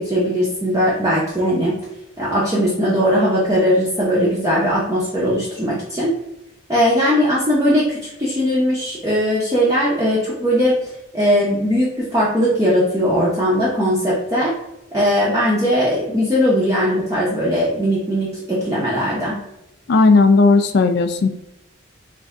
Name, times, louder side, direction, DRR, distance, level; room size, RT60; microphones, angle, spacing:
voice 1, 0.0-1.7 2.2-6.1 6.7-10.8 11.1-14.5 14.9-19.4, equal, 15° right, -7 dB, 0.6 m, -19 dB
voice 2, 19.9-21.3, left 3 dB, 55° left, 8 dB, 0.3 m, -14 dB
3.3 x 2.6 x 3.6 m, 0.88 s
head